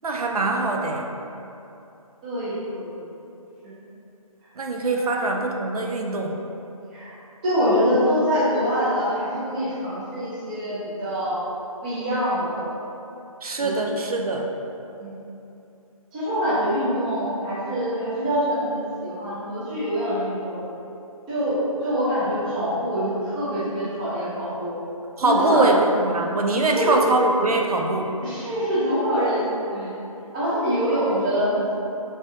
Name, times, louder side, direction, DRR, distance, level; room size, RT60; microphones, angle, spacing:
voice 1, 0.0-1.1 4.6-6.3 13.4-14.5 25.2-28.1, right 2 dB, 80° right, 1 dB, 0.5 m, -23 dB
voice 2, 2.2-2.9 3.6-3.8 4.9-5.1 6.9-7.2 7.4-11.4 11.8-12.6 13.6-13.8 14.2-14.3 15.0-15.2 16.1-20.7 21.3-24.8 25.2-25.7 26.6-26.9 28.2-29.9 30.3-31.7, equal, 10° right, -10 dB, 0.5 m, -25 dB
3.3 x 3.2 x 2.7 m, 2.8 s
figure-of-eight pair, 155°, 19 cm